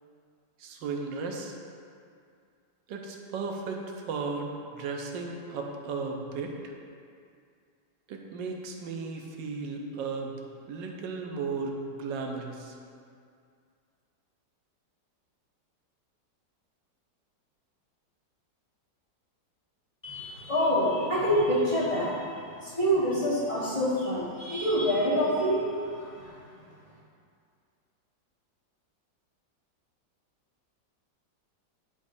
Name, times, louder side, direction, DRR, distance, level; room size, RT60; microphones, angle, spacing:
voice 1, 0.6-1.5 2.9-6.5 8.1-10.3 10.7-12.7, right 4 dB, 85° right, 2 dB, 1.4 m, -35 dB
voice 2, 20.0-26.3, equal, 20° left, -8 dB, 1.3 m, -27 dB
10.5 x 4.9 x 2.7 m, 2.3 s
omnidirectional pair, 1.9 m